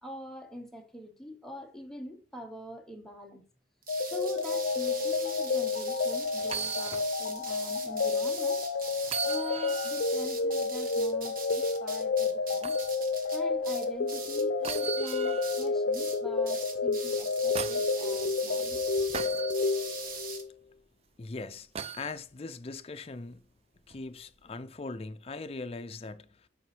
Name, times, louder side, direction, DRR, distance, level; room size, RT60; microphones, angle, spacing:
voice 1, 0.0-3.5 4.1-8.7 9.2-12.8 13.3-19.1, equal, ahead, 0.9 m, -44 dB
sound 1, 3.8-14.8 15.1-15.7 15.9-16.2 16.5-20.4, right 5 dB, 55° right, 1.1 m, -42 dB
sound 2, 3.9-20.5, left 4 dB, 85° left, 0.5 m, -30 dB
sound 3, 6.4-7.1 7.5-7.6 9.0-10.1 12.6-12.9 14.6-15.6 17.1-18.0 19.1-19.6 21.7-22.1 23.9-24.0, right 7 dB, 35° right, 0.3 m, -37 dB
voice 2, 21.2-21.7 21.9-23.4 23.9-26.5, left 3 dB, 35° left, 0.5 m, -40 dB
7.7 x 5.3 x 3.2 m
head